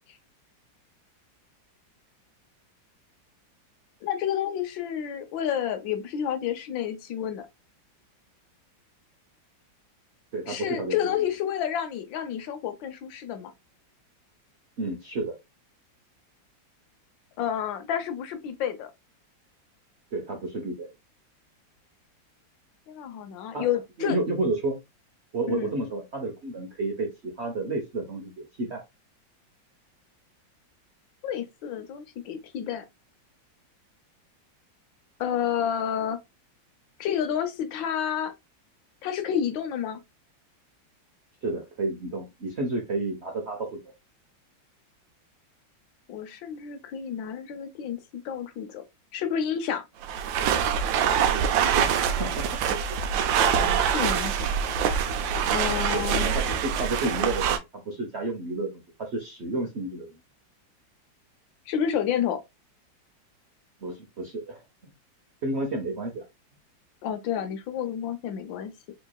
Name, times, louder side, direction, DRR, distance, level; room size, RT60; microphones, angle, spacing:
voice 1, 4.0-7.5 10.5-13.5 17.4-18.9 22.9-24.2 25.5-25.7 31.2-32.8 35.2-36.2 37.0-38.3 39.0-40.0 46.1-48.8 49.1-49.8 53.5-54.5 55.5-56.3 61.7-62.4 67.0-68.7, left 9 dB, 80° left, 1.4 m, -30 dB
voice 2, 10.3-11.2 14.8-15.3 20.1-20.9 23.5-23.7 24.0-24.8 25.3-28.8 41.4-43.9 51.3-53.0 55.9-56.0 56.3-57.6 57.8-60.1 63.8-64.6 65.4-66.2, right 2 dB, 55° right, 0.7 m, -31 dB
sound 1, 50.0-57.6, right 8 dB, 80° right, 1.3 m, -25 dB
4.4 x 3.0 x 2.2 m
omnidirectional pair, 2.1 m